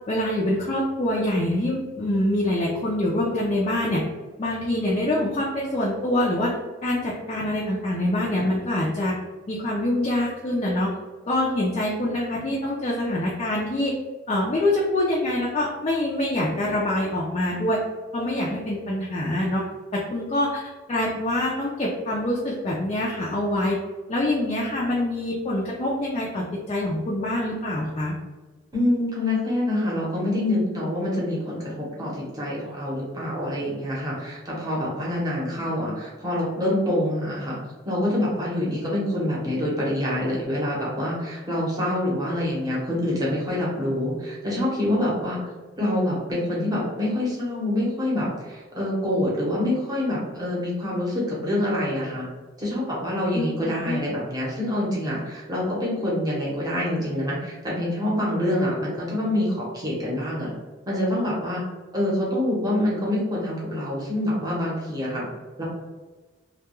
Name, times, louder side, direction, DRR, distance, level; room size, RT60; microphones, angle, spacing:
voice 1, 0.1-4.0 4.4-6.5 6.8-9.2 9.5-10.9 11.3-13.9 14.3-17.8 18.1-19.6 19.9-20.6 20.9-23.8 24.1-28.1 53.3-53.5 53.9-54.0, left 1 dB, 35° left, -4 dB, 0.4 m, -25 dB
voice 2, 28.7-37.6 37.8-45.4 45.8-52.2 52.6-60.5 60.9-61.6 61.9-65.2 65.6-65.7, left 1 dB, 20° right, -6 dB, 0.8 m, -26 dB
2.2 x 2.2 x 2.9 m, 1.2 s
head